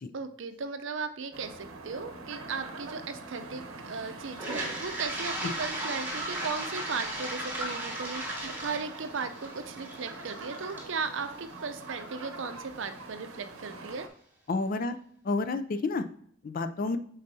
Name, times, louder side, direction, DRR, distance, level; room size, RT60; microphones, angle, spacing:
voice 1, 0.1-14.1, right 4 dB, 60° right, 9 dB, 0.6 m, -36 dB
sound 1, 1.3-14.1, right 3 dB, 85° right, 0.8 m, -44 dB
Toilet flush, 4.3-12.2, right 1 dB, 10° right, 1.1 m, -37 dB
voice 2, 14.5-15.0 15.2-16.0 16.4-17.0, left 3 dB, 40° left, 10 dB, 0.4 m, -30 dB
8.8 x 4.0 x 2.7 m, 0.64 s
head